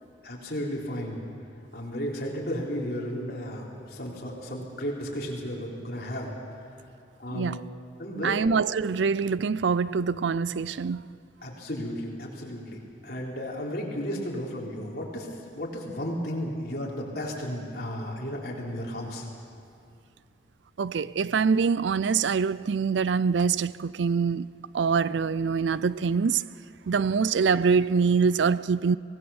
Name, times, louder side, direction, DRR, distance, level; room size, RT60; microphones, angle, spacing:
voice 1, 0.2-1.2 1.7-6.3 7.2-7.6 8.0-8.4 11.4-19.3, equal, 55° left, 3.9 m, -34 dB
voice 2, 8.2-11.0 20.8-24.5 24.7-26.4 26.9-29.0, right 5 dB, 80° right, 0.4 m, -24 dB
24.0 x 18.5 x 7.1 m
head